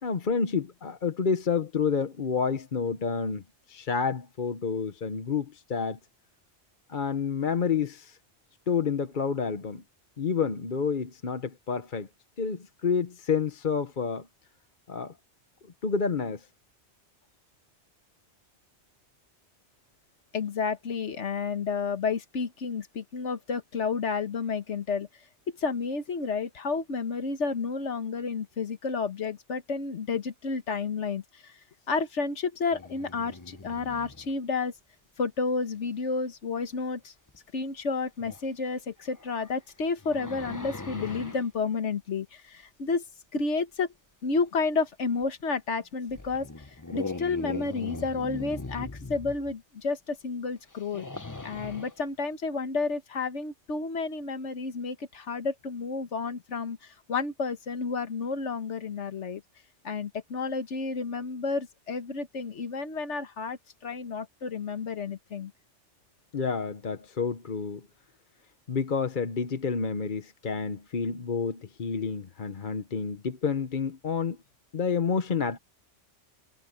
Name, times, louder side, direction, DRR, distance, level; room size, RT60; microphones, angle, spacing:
voice 1, 0.0-6.0 6.9-8.2 8.7-9.8 10.2-12.1 12.4-14.3 14.9-15.1 15.8-16.5 66.3-67.9 68.7-74.4 74.7-75.6, left 5 dB, 45° left, 1.1 m, -29 dB
voice 2, 20.3-25.1 25.6-31.2 31.9-34.7 35.2-37.1 37.5-43.0 43.3-43.9 44.2-46.5 46.9-51.1 51.4-56.8 57.1-59.4 59.8-65.5, left 4 dB, 75° left, 1.6 m, -31 dB
sound 1, 32.7-34.3 37.3-37.4 38.2-38.4 39.1-41.5 45.2-45.3 46.1-49.5 50.7-52.0, left 3 dB, 15° left, 1.0 m, -40 dB
omnidirectional pair, 1.2 m